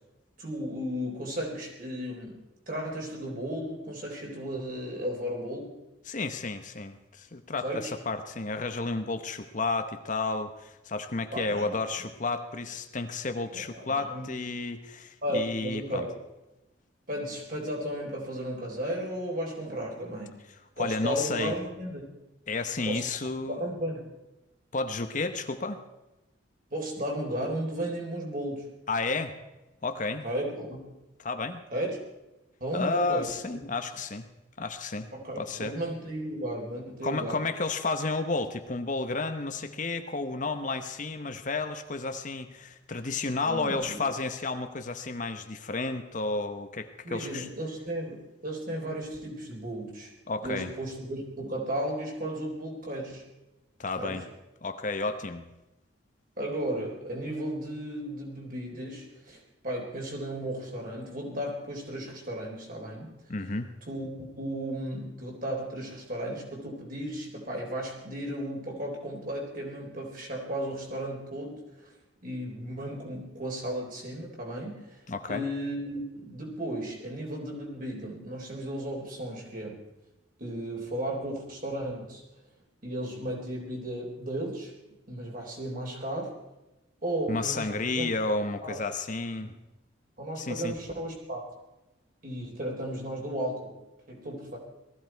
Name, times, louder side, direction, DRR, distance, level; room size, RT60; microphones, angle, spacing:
voice 1, 0.4-2.4 2.7-5.8 7.6-7.9 11.3-11.8 13.5-14.3 15.2-16.2 17.1-20.4 20.8-22.0 22.8-23.0 23.5-24.1 26.7-28.7 30.2-30.9 31.7-32.0 32.6-33.6 35.1-37.4 43.5-44.0 47.0-50.1 50.4-53.3 54.0-54.3 56.4-63.1 63.9-71.9 72.2-75.0 75.3-79.8 80.4-82.2 82.8-84.7 85.1-86.3 87.0-88.1 88.6-88.8 89.4-89.5 90.2-91.4 92.2-93.7 94.1-94.6, right 1 dB, 45° right, -1 dB, 3.9 m, -34 dB
voice 2, 6.1-16.1 20.8-21.5 22.5-23.6 24.7-25.8 28.9-29.4 29.8-30.2 31.2-31.6 32.7-34.3 34.6-35.1 35.4-35.8 37.0-47.5 50.3-50.7 53.8-54.2 54.6-55.4 63.3-63.7 75.1-75.5 87.3-89.5 90.4-90.7, left 3 dB, 40° left, 8 dB, 0.9 m, -32 dB
19.0 x 14.5 x 4.6 m, 1.0 s
head